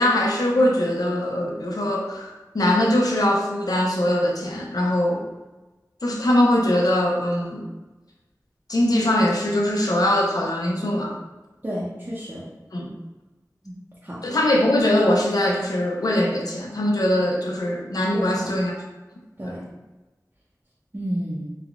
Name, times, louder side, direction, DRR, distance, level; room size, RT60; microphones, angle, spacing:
voice 1, 0.0-5.3 6.0-7.7 8.7-11.1 12.7-12.9 14.2-18.8 19.4-19.5, left 1 dB, 70° left, -1 dB, 0.5 m, -22 dB
voice 2, 11.6-12.4 13.6-13.7 14.0-14.2 18.1-18.5 19.4-19.6 20.9-21.5, equal, 30° right, -8 dB, 0.6 m, -30 dB
3.4 x 2.2 x 2.4 m, 1.2 s
wide cardioid pair, 45°, 7 cm